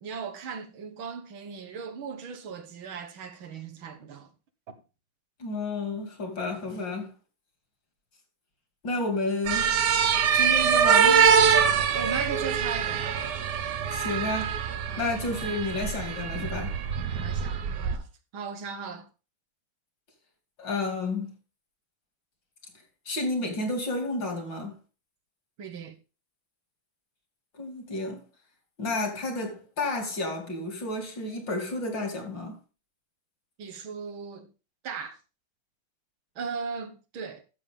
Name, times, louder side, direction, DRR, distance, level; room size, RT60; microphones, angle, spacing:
voice 1, 0.0-4.3 4.7-4.8 11.9-13.2 14.9-15.2 17.1-18.1 18.3-19.1 25.6-26.0 33.6-34.5 34.8-35.2 36.4-37.4, right 5 dB, 80° right, 2.1 m, -38 dB
voice 2, 5.4-7.1 8.8-9.7 10.3-11.3 13.9-14.6 15.0-16.8 20.6-21.3 23.1-24.8 27.5-28.2 28.8-32.6, left 2 dB, 65° left, 3.3 m, -31 dB
sound 1, 9.5-18.0, right 7 dB, 60° right, 1.4 m, -24 dB
12.0 x 7.2 x 3.7 m
omnidirectional pair, 2.2 m